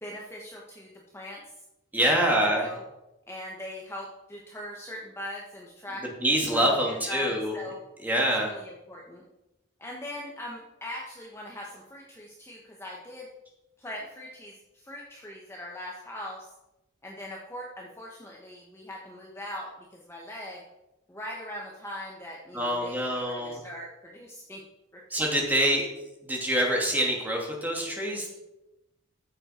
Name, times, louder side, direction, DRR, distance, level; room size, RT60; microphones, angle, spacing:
voice 1, 0.0-1.4 2.0-2.1 2.5-2.8 3.3-6.1 6.5-7.8 8.2-9.3 9.8-13.3 13.8-16.5 17.0-20.6 21.1-24.6 24.9-25.0, left 1 dB, 15° left, -2 dB, 1.3 m, -41 dB
voice 2, 1.9-2.7 6.2-7.5 8.0-8.5 22.5-23.6 25.1-25.9 26.2-28.3, right 1 dB, 10° right, -1 dB, 2.5 m, -25 dB
14.5 x 7.6 x 4.5 m, 0.94 s
head